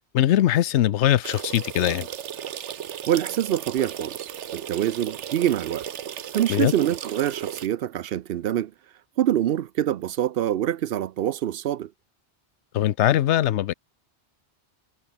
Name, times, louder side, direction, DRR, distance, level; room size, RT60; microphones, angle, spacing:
voice 1, 0.1-2.1 6.5-6.7 12.7-13.7, left 12 dB, 80° left, 0.9 m, -21 dB
sound 1, 1.2-7.7, right 9 dB, 90° right, 1.2 m, -35 dB
voice 2, 3.1-5.9 6.3-8.7 9.2-11.9, right 11 dB, 65° right, 0.7 m, -25 dB
omnidirectional pair, 1.2 m